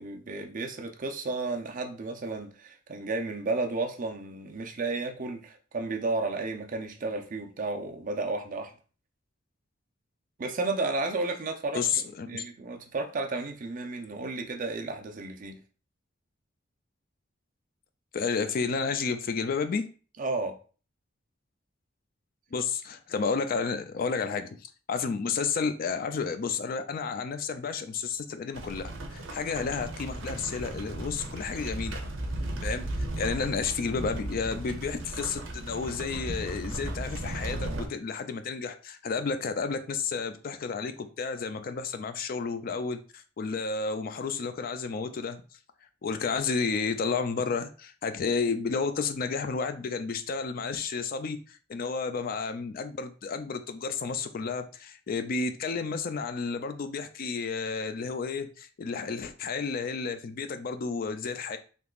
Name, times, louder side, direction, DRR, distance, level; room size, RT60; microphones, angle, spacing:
voice 1, 0.0-8.7 10.4-15.6 20.2-20.6, right 3 dB, 45° right, 0.5 m, -33 dB
voice 2, 11.7-12.4 18.1-19.9 22.5-31.9 32.6-45.4 46.0-61.6, left 5 dB, 50° left, 0.4 m, -31 dB
sound 1, 28.5-37.9, right 1 dB, 90° right, 0.7 m, -36 dB
3.5 x 2.8 x 2.4 m
head